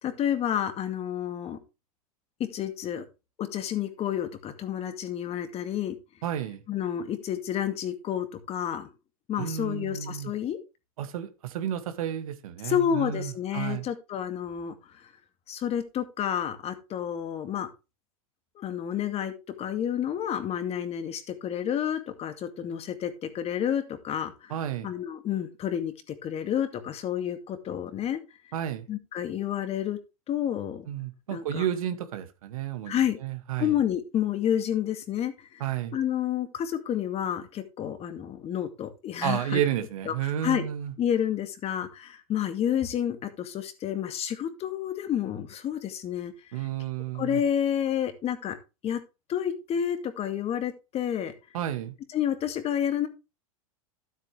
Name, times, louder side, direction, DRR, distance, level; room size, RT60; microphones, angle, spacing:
voice 1, 0.0-1.6 2.4-3.0 3.4-6.0 6.7-8.9 9.3-10.6 12.6-14.7 15.5-17.7 18.6-19.3 19.6-24.5 24.8-28.2 28.9-30.0 30.3-30.9 31.3-31.6 32.9-33.2 33.6-35.6 35.9-39.6 40.1-40.6 41.0-46.3 47.1-48.6 48.8-49.0 49.3-51.3 52.1-53.1, left 9 dB, 35° left, 2.2 m, -30 dB
voice 2, 6.2-6.6 9.4-10.3 11.0-13.9 24.5-24.9 28.5-28.9 30.9-33.8 35.6-36.0 39.2-40.9 46.5-47.4 51.5-52.0, right 10 dB, 70° right, 2.1 m, -31 dB
12.5 x 8.1 x 3.4 m
hypercardioid pair, 110°, 18 cm